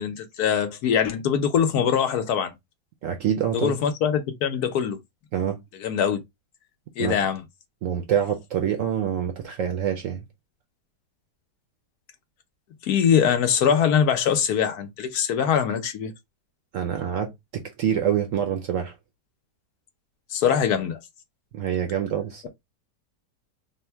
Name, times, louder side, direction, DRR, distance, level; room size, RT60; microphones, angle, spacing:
voice 1, 0.0-2.5 3.5-5.0 5.8-6.2 7.0-7.4 12.8-16.1 20.3-21.0, left 8 dB, 70° left, 1.1 m, -22 dB
voice 2, 3.0-3.8 5.3-5.6 7.0-7.2 7.8-10.2 16.7-18.9 21.5-22.5, right 9 dB, 65° right, 0.8 m, -26 dB
3.5 x 2.2 x 4.3 m
omnidirectional pair, 1.8 m